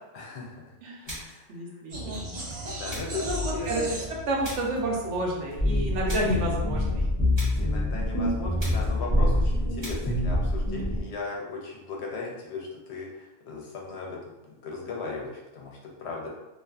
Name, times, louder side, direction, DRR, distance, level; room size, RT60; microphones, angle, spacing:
voice 1, 0.1-0.8 1.1-1.8 2.8-3.9 7.6-16.3, left 4 dB, 70° left, -2 dB, 0.8 m, -37 dB
voice 2, 0.8-1.2 1.5-2.4 3.2-4.0 4.3-7.1, right 1 dB, 75° right, -2 dB, 0.9 m, -30 dB
sound 1, 1.1-1.5 2.9-3.3 4.4-4.8 6.1-6.4 7.3-7.7 8.6-9.0 9.8-10.2, equal, 25° right, 0.8 m, -40 dB
sound 2, 1.9-6.1, equal, 50° right, 0.5 m, -36 dB
sound 3, 5.6-11.0, left 1 dB, 40° left, 0.4 m, -25 dB
2.5 x 2.4 x 2.3 m, 0.98 s
omnidirectional pair, 1.3 m